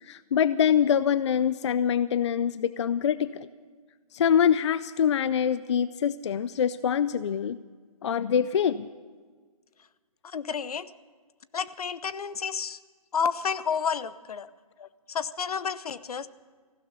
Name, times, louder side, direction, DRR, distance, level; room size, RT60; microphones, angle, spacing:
voice 1, 0.0-3.5 4.1-7.6 8.0-8.9 14.8-14.9, left 8 dB, 50° left, 16 dB, 0.4 m, -24 dB
voice 2, 10.2-10.9 11.5-12.8 13.1-14.5 15.1-16.3, left 6 dB, 70° left, 16 dB, 0.7 m, -30 dB
15.5 x 12.0 x 6.9 m, 1.5 s
hypercardioid pair, 155°, 20 cm